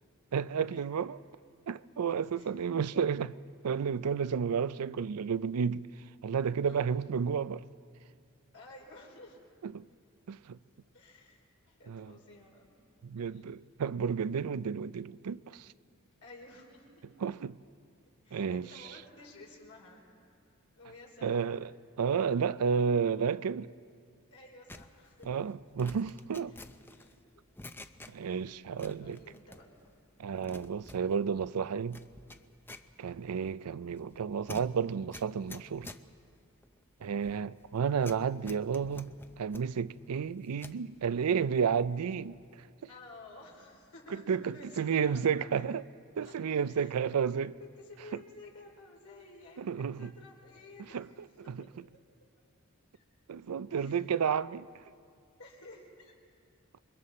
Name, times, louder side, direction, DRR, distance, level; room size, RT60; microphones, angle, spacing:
voice 1, 0.3-1.2 1.7-3.4 3.6-5.9 6.2-7.6 9.6-9.9 10.3-10.6 11.9-12.1 13.0-15.7 17.2-17.6 18.3-18.7 21.2-21.7 22.0-23.7 25.3-26.5 28.1-29.2 30.2-32.0 33.0-35.9 37.0-42.4 44.3-45.8 46.2-47.5 49.6-50.1 50.9-51.6 53.3-54.7, right 6 dB, 85° right, 0.4 m, -31 dB
voice 2, 8.5-9.4 10.9-11.4 11.7-12.7 13.2-13.4 16.2-17.1 18.2-20.0 20.8-21.6 24.3-25.3 26.5-26.6 26.9-27.3 28.3-28.5 29.0-29.7 42.9-45.7 46.2-46.4 46.7-47.0 47.6-51.0 51.4-51.7 52.9-53.0 53.8-54.0 54.3-54.6 55.4-56.1, left 2 dB, 70° left, 4.0 m, -53 dB
sound 1, 24.7-28.4 28.7-29.9 30.2-40.8 41.2-42.1 42.3-42.6, left 2 dB, 10° left, 0.5 m, -51 dB
28.0 x 23.0 x 4.2 m
head